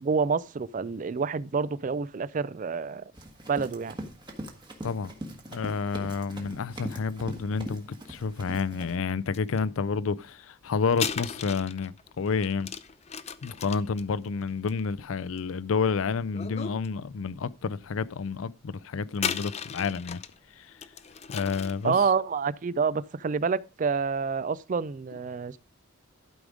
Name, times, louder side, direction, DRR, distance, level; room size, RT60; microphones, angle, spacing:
voice 1, 0.0-3.0 3.5-4.0 21.8-25.6, right 5 dB, 40° right, 0.3 m, -28 dB
Run, 3.1-9.0, right 1 dB, 20° right, 1.3 m, -41 dB
voice 2, 5.5-12.7 13.4-20.2 20.6-20.7 21.3-21.9, left 5 dB, 85° left, 0.5 m, -30 dB
sound 1, 9.3-9.6 10.9-15.7 16.3-16.9 17.3-17.4 19.1-20.4 20.8-21.9, left 7 dB, 30° left, 0.5 m, -36 dB
11.5 x 5.0 x 5.0 m
head